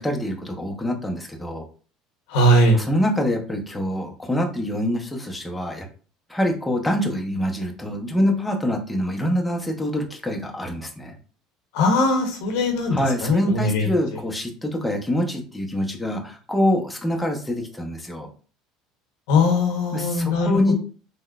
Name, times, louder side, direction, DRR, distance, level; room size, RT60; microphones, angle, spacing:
voice 1, 0.0-1.6 2.7-5.9 6.3-11.2 12.9-18.3 19.9-20.7, equal, 10° left, 1 dB, 0.7 m, -25 dB
voice 2, 2.3-2.8 11.7-13.9 19.3-20.7, left 1 dB, 75° left, 2 dB, 0.9 m, -20 dB
3.7 x 2.2 x 2.3 m, 0.39 s
supercardioid pair, 90°, 0 cm